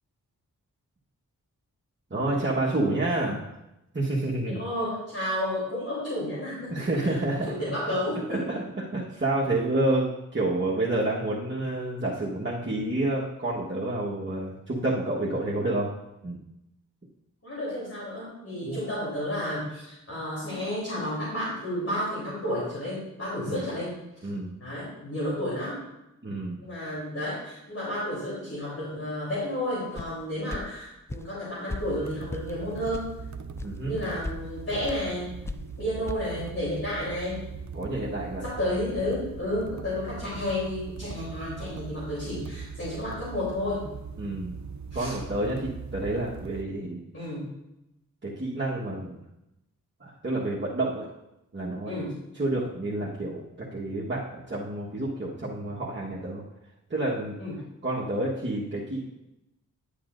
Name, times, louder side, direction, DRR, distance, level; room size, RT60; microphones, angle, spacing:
voice 1, 2.1-3.5 3.9-4.6 6.7-7.6 8.3-15.9 16.2-16.4 18.6-18.8 23.4-23.6 24.2-24.5 26.2-26.6 33.6-34.0 37.7-38.4 44.2-44.5 44.9-47.0 48.2-49.2 50.0-51.1 51.5-52.0 52.3-56.4 56.9-57.4 57.8-59.0, right 2 dB, 35° right, -6 dB, 1.4 m, -29 dB
voice 2, 4.5-6.7 7.0-7.1 7.5-8.4 17.4-23.9 24.6-25.8 26.6-33.1 33.8-35.3 35.8-37.4 38.4-43.8 44.9-45.1 47.1-47.5 51.9-52.1 57.4-57.6, left 1 dB, 45° left, -8 dB, 3.5 m, -31 dB
sound 1, 30.0-30.1 30.5-30.7 31.1-31.3 31.7-31.9 32.3-32.5 32.9-33.1 33.6-33.7 34.1-34.4 34.9-35.0 35.5-35.7 36.1-36.2, left 2 dB, 10° left, 0.3 m, -35 dB
sound 2, 31.8-46.7, right 5 dB, 55° right, 0.6 m, -40 dB
10.5 x 8.4 x 2.6 m, 0.90 s
wide cardioid pair, 70°, 33 cm